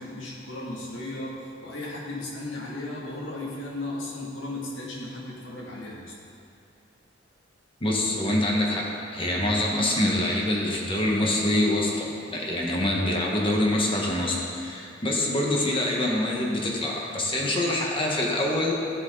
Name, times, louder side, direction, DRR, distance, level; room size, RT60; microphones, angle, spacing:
voice 1, 0.0-1.3 1.6-6.1, left 2 dB, 75° left, -5 dB, 2.3 m, -35 dB
voice 2, 7.8-18.7, left 1 dB, 25° left, -2 dB, 1.3 m, -25 dB
13.5 x 7.1 x 4.0 m, 2.6 s
head